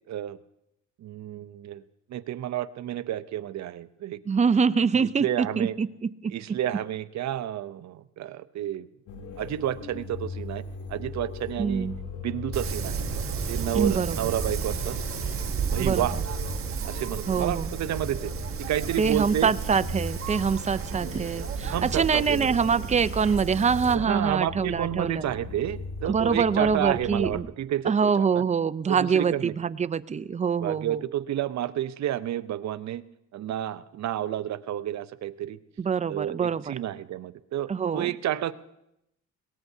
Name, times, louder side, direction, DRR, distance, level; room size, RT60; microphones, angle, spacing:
voice 1, 0.1-0.4 1.0-1.8 2.1-4.2 5.0-5.8 6.3-8.9 9.4-10.6 10.9-11.9 12.2-13.1 13.5-15.0 15.7-16.2 16.8-18.3 18.6-19.5 21.7-22.5 23.9-28.4 28.9-29.5 30.6-33.0 33.3-35.6 36.1-38.5, right 12 dB, 65° right, 14 dB, 0.7 m, -30 dB
voice 2, 4.3-5.9 6.2-6.3 11.6-11.9 13.7-14.3 15.8-16.1 17.3-17.7 19.0-25.2 26.0-27.5 27.8-31.0 35.8-36.7 37.7-38.1, right 6 dB, 25° right, 14 dB, 0.5 m, -25 dB
sound 1, 9.1-27.4, left 4 dB, 75° left, 2.7 m, -39 dB
Wind, 12.5-23.9, right 7 dB, 45° right, 1.2 m, -32 dB
22.0 x 18.5 x 2.7 m, 0.84 s
cardioid pair, 90°, 30 cm